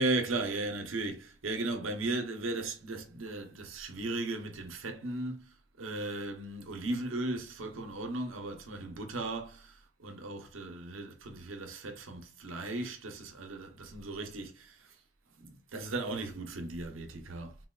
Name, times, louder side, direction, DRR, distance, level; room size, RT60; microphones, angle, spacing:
voice 1, 0.0-15.0 15.4-17.6, right 2 dB, 85° right, 0.7 m, -36 dB
3.9 x 2.2 x 2.2 m
head